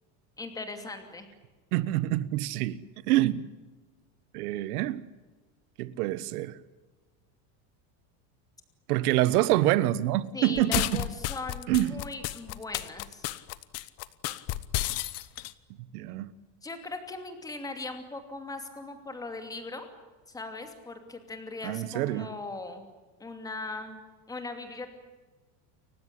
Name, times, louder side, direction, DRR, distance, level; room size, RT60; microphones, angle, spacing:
voice 1, 0.4-1.3 10.3-13.2 16.6-19.9 20.3-22.9 23.2-24.0 24.3-24.9, left 3 dB, 10° left, 6 dB, 2.7 m, -39 dB
voice 2, 1.7-2.8 3.1-3.5 4.3-5.0 5.8-6.6 8.9-11.0 11.7-11.9 15.9-16.3 21.6-22.3, right 15 dB, 85° right, 17 dB, 1.5 m, -26 dB
sound 1, 10.6-15.5, left 16 dB, 35° left, 0.9 m, -32 dB
29.5 x 15.5 x 9.9 m, 1.3 s
cardioid pair, 175°, 44 cm